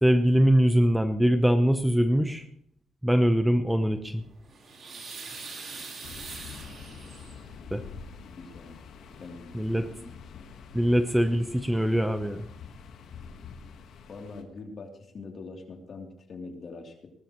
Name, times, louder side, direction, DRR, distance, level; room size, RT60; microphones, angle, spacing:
voice 1, 0.0-2.4 3.0-4.2 7.7-7.8 9.5-9.9 10.7-12.4, equal, 5° right, 9 dB, 0.8 m, -22 dB
sound 1, 4.2-7.5 8.8-8.9 9.1-9.3, right 4 dB, 55° right, 4.0 m, -42 dB
sound 2, 6.0-14.4, left 6 dB, 75° left, 1.5 m, -46 dB
voice 2, 8.3-8.8 9.2-10.6 14.1-17.1, left 3 dB, 50° left, 2 dB, 3.1 m, -44 dB
19.0 x 13.0 x 3.1 m, 0.68 s
cardioid pair, 90°, 0 cm